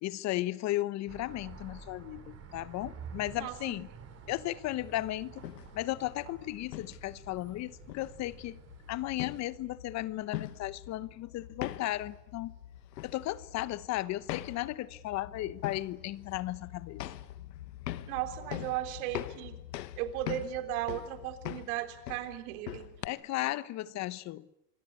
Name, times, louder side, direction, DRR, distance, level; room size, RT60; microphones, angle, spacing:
voice 1, 0.0-3.9 4.3-5.5 5.7-8.6 8.9-12.5 13.0-17.0 23.0-24.5, left 16 dB, 35° left, 1.0 m, -35 dB
sound 1, 1.1-9.4, right 6 dB, 30° right, 5.2 m, -50 dB
voice 2, 3.3-3.8 18.1-19.6 20.0-22.9, right 13 dB, 60° right, 3.7 m, -36 dB
sound 2, 5.3-23.1, left 13 dB, 85° left, 1.4 m, -43 dB
26.5 x 21.0 x 8.4 m
supercardioid pair, 125°, 49 cm